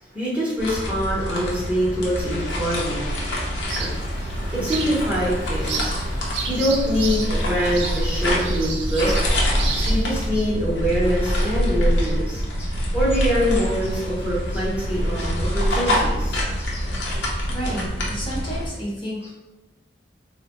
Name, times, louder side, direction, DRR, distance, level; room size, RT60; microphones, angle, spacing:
voice 1, 0.1-3.1 3.7-3.9 4.5-5.9 6.5-9.3 9.9-16.7 17.2-17.3, equal, 10° right, -8 dB, 0.7 m, -24 dB
sound 1, 0.6-18.7, equal, 70° left, 0.7 m, -25 dB
sound 2, 3.7-10.3, right 4 dB, 85° right, 0.5 m, -32 dB
voice 2, 17.5-19.3, equal, 30° left, -5 dB, 0.9 m, -31 dB
3.7 x 2.1 x 3.0 m, 1.1 s
head